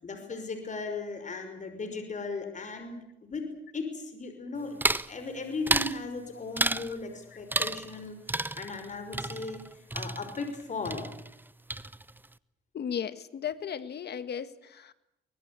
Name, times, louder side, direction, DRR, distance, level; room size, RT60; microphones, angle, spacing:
voice 1, 0.0-11.0, left 3 dB, 40° left, 6 dB, 5.6 m, -37 dB
sound 1, 4.8-5.1 5.7-6.0 6.6-6.9 7.5-8.0 8.3-10.6 10.9-11.4 11.7-12.3, right 2 dB, 10° right, 0.8 m, -31 dB
voice 2, 12.7-14.9, left 8 dB, 55° left, 12 dB, 1.9 m, -35 dB
24.5 x 20.5 x 8.6 m, 0.82 s
cardioid pair, 90°, 20 cm